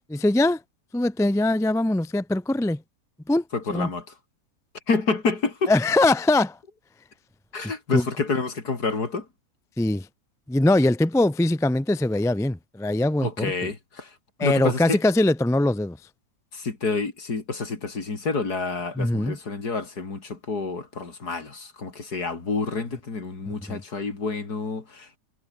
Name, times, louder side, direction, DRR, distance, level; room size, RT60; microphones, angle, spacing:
voice 1, 0.1-0.6 0.9-2.8 3.3-3.4 3.7-3.9 5.7-6.6 7.9-8.0 9.8-10.1 10.5-13.5 14.4-16.0 19.0-19.4 23.5-23.8, left 2 dB, 5° left, 0.5 m, -22 dB
voice 2, 3.5-4.1 4.9-5.7 7.5-9.3 13.2-14.1 14.4-15.0 16.5-25.2, left 4 dB, 70° left, 3.8 m, -28 dB
omnidirectional pair, 1.8 m